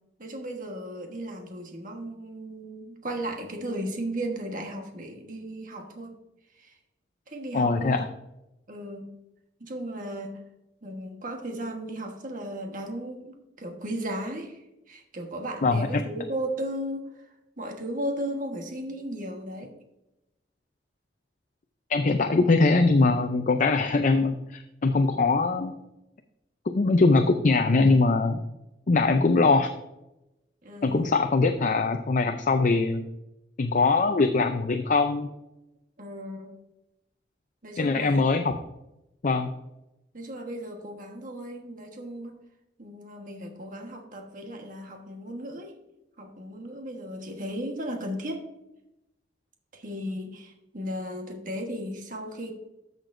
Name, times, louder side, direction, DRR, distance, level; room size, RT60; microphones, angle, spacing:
voice 1, 0.2-6.1 6.6-6.7 7.3-8.0 8.7-9.2 9.6-10.4 10.8-14.6 14.9-17.3 17.6-19.7 30.6-31.1 36.0-36.5 37.6-38.2 40.1-42.4 42.8-45.7 46.2-48.4 49.7-52.5, right 1 dB, 50° right, 3 dB, 1.3 m, -35 dB
voice 2, 7.5-8.1 15.6-16.0 21.9-25.7 26.7-28.4 28.9-29.7 30.8-33.1 33.6-35.3 37.8-38.6 39.2-39.5, left 3 dB, 45° left, 6 dB, 0.5 m, -22 dB
13.5 x 6.6 x 2.6 m, 0.91 s
head